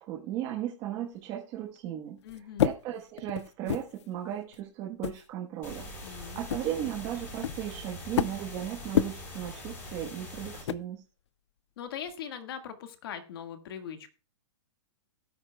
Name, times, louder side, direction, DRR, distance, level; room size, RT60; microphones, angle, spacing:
voice 1, 0.0-2.2 2.6-11.0, right 11 dB, 25° right, -1 dB, 1.3 m, -36 dB
sound 1, 1.8-1.9 2.3-4.1 4.5-4.6 5.0-5.3 5.7-5.8 6.0-6.2 6.5-8.7 8.9-9.1 10.4-10.8 12.1-12.2, left 10 dB, 70° left, 0.5 m, -30 dB
voice 2, 2.2-2.7 6.0-6.5 11.8-14.1, left 8 dB, 50° left, 7 dB, 1.8 m, -41 dB
sound 2, 5.6-10.6, left 1 dB, 15° left, 4.5 m, -43 dB
17.5 x 9.6 x 2.3 m, 0.34 s
hypercardioid pair, 170°, 15 cm